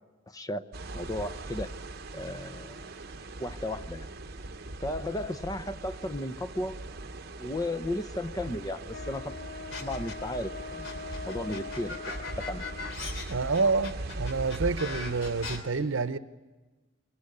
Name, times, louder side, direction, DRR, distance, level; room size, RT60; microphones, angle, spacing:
voice 1, 0.3-0.6 0.9-1.7 2.1-2.9 3.4-4.1 4.8-6.8 7.4-9.4 9.8-10.9 11.2-12.6, left 1 dB, 20° left, 0.7 m, -34 dB
sound 1, 0.7-15.6, right 2 dB, 50° right, 1.1 m, -40 dB
Wind instrument woodwind instrument, 8.9-13.3, left 5 dB, 60° left, 1.2 m, -43 dB
sound 2, 9.7-10.4 10.8-15.6, left 4 dB, 90° left, 3.0 m, -39 dB
voice 2, 13.3-16.2, right 4 dB, 80° right, 0.8 m, -28 dB
22.5 x 18.5 x 9.7 m
head